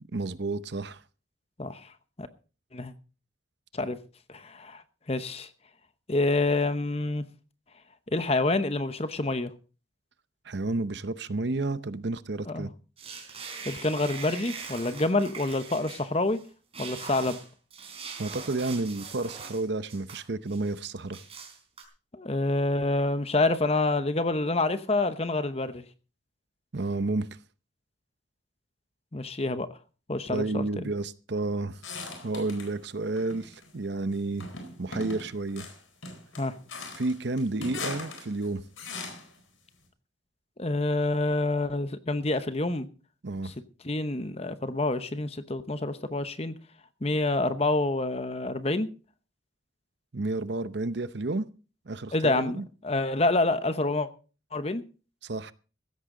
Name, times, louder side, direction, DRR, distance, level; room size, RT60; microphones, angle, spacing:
voice 1, 0.1-1.0 10.5-12.7 18.2-21.2 26.7-27.3 30.3-31.8 32.2-34.5 34.8-35.7 37.0-38.6 43.2-43.5 50.1-51.5 51.9-52.6 55.2-55.5, right 2 dB, 60° right, 0.7 m, -31 dB
voice 2, 4.3-4.8 5.1-5.5 6.1-7.2 8.1-9.5 12.5-12.7 13.7-16.4 16.8-17.4 22.1-25.8 29.1-29.7 30.1-30.8 36.4-36.5 40.6-42.9 43.4-43.5 43.8-46.5 47.0-48.9 52.1-54.1 54.5-54.8, left 2 dB, 30° left, 0.9 m, -27 dB
sound 1, 13.0-16.4 16.7-19.6 19.9-20.8 21.1-21.8, right 5 dB, 30° right, 4.1 m, -42 dB
sound 2, 31.8-32.7 33.2-33.7 34.4-39.4, left 3 dB, 85° left, 4.3 m, -40 dB
16.0 x 13.5 x 3.8 m
head